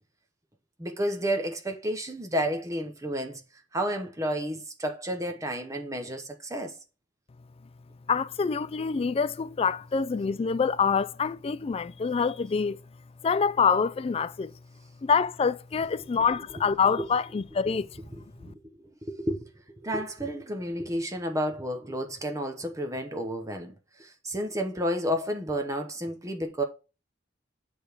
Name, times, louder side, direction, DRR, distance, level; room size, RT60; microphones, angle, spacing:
voice 1, 0.8-3.4 3.7-6.8 17.0-17.1 18.1-19.5 19.8-26.6, equal, 15° right, 0.8 m, -31 dB
voice 2, 8.1-12.8 13.2-14.5 15.0-17.9 18.4-18.5, left 5 dB, 30° left, 0.3 m, -26 dB
8.8 x 3.4 x 4.5 m
head